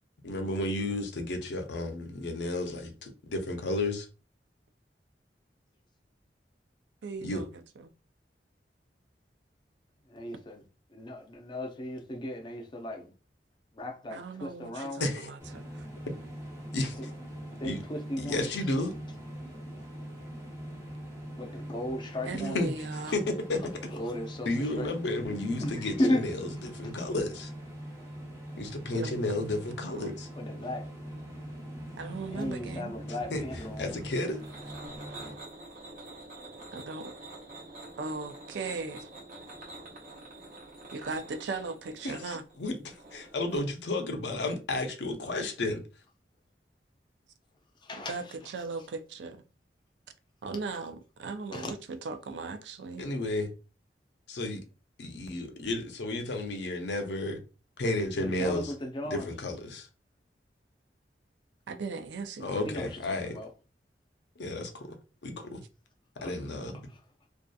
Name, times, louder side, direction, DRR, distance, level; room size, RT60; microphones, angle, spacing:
voice 1, 0.2-4.1 7.2-7.4 15.0-15.3 16.7-16.9 17.6-17.8 18.2-18.9 22.4-22.7 23.1-23.9 24.5-27.5 28.6-30.3 33.3-34.4 42.0-45.8 53.0-53.5 54.3-54.6 55.0-57.4 57.8-58.7 59.0-59.9 62.4-63.4 64.4-65.0 65.2-65.6 66.2-66.8, left 2 dB, 80° left, 0.6 m, -32 dB
voice 2, 7.0-7.9 14.1-15.9 22.2-23.2 28.9-29.2 29.9-30.1 32.0-32.9 36.7-37.1 38.0-39.1 40.9-42.4 47.9-49.4 50.4-53.1 61.7-62.6, right 4 dB, 80° right, 0.4 m, -38 dB
voice 3, 10.1-10.6 10.9-13.1 13.8-15.0 17.6-18.5 21.4-22.7 23.9-24.5 24.8-24.9 25.6-26.2 30.4-30.9 32.3-34.0 47.8-48.2 51.5-51.7 58.2-59.3 62.6-63.5 66.2-66.3, left 1 dB, 25° left, 0.5 m, -35 dB
sound 1, 15.4-35.3, equal, 15° right, 0.7 m, -42 dB
sound 2, 33.6-43.6, right 2 dB, 50° right, 0.9 m, -47 dB
2.6 x 2.4 x 2.2 m
head